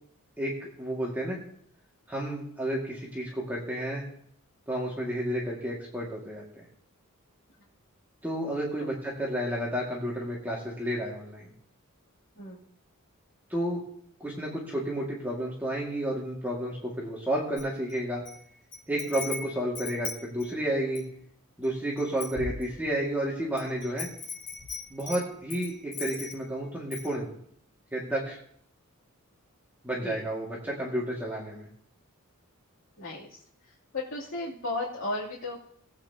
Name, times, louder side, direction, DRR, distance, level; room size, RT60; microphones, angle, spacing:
voice 1, 0.4-1.4 2.1-4.0 4.7-6.6 8.2-11.5 13.5-13.8 14.2-18.2 18.9-21.0 21.6-24.1 24.9-27.3 27.9-28.4 29.8-31.7, right 1 dB, 10° right, -4 dB, 2.0 m, -31 dB
Wind chime, 17.6-18.4 18.7-21.1 21.6-21.7 22.0-23.1 23.6-26.5 26.9-27.1, left 4 dB, 45° left, 4.8 m, -38 dB
voice 2, 33.0-33.4 33.7-35.8, left 2 dB, 60° left, -9 dB, 2.9 m, -35 dB
19.0 x 8.7 x 2.8 m, 0.65 s
head